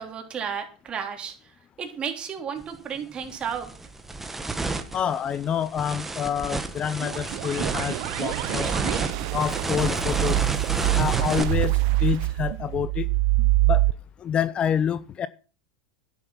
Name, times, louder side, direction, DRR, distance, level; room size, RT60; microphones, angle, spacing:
voice 1, 0.0-1.3 1.8-3.7, right 7 dB, 25° right, 3.5 m, -33 dB
sound 1, 2.6-2.8 3.2-11.4, right 3 dB, 10° right, 1.4 m, -31 dB
voice 2, 4.9-8.7 9.3-10.4 10.9-13.1 13.6-13.9 14.2-15.3, left 8 dB, 30° left, 0.6 m, -27 dB
sound 2, 7.0-13.9, right 19 dB, 60° right, 0.6 m, -25 dB
11.0 x 10.5 x 5.8 m
hypercardioid pair, 115°, 4 cm